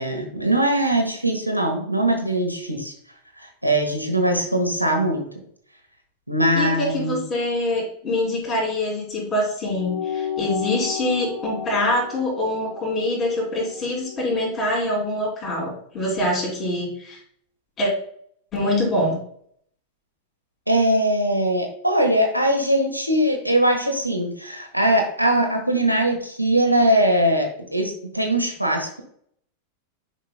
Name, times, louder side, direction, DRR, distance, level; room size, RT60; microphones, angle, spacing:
voice 1, 0.0-2.9 3.4-5.3 6.3-7.2 20.7-29.0, right 1 dB, 90° right, 3 dB, 1.4 m, -21 dB
voice 2, 6.5-17.2 17.8-17.9 18.5-19.2, left 1 dB, 25° left, -3 dB, 3.1 m, -24 dB
sound 1, 9.7-14.5, left 7 dB, 55° left, 2.3 m, -33 dB
9.7 x 5.4 x 2.3 m, 0.64 s
figure-of-eight pair, 90°, 0 cm